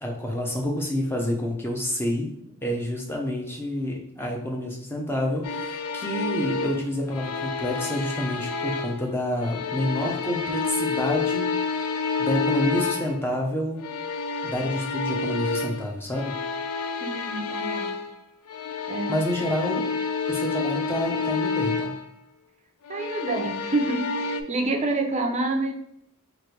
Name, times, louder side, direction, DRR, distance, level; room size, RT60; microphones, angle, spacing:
voice 1, 0.0-2.3 2.6-11.5 12.2-13.8 14.4-16.3 19.1-19.8 20.3-21.9, left 1 dB, 10° left, -1 dB, 0.7 m, -28 dB
sound 1, 5.4-9.1 9.4-13.3 13.8-18.2 18.5-22.0 22.8-24.4, left 4 dB, 85° left, 0.4 m, -29 dB
voice 2, 17.0-18.0 18.9-19.2 22.9-25.7, right 2 dB, 30° right, 3 dB, 0.5 m, -28 dB
3.3 x 2.5 x 4.4 m, 0.72 s
head